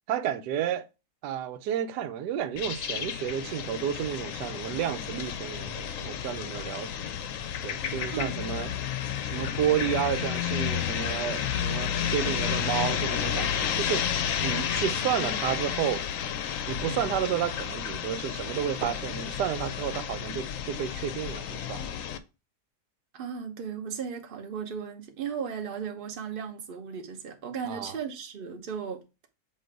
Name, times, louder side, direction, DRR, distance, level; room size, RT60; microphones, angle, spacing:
voice 1, 0.1-0.9 1.2-7.0 7.6-8.7 9.2-14.1 14.4-16.0 16.7-21.9 27.6-28.0, right 9 dB, 90° right, 1.2 m, -31 dB
sound 1, 2.6-22.2, left 8 dB, 65° left, 0.9 m, -31 dB
voice 2, 23.1-29.0, right 7 dB, 40° right, 1.0 m, -36 dB
7.6 x 2.6 x 4.7 m
omnidirectional pair, 1.7 m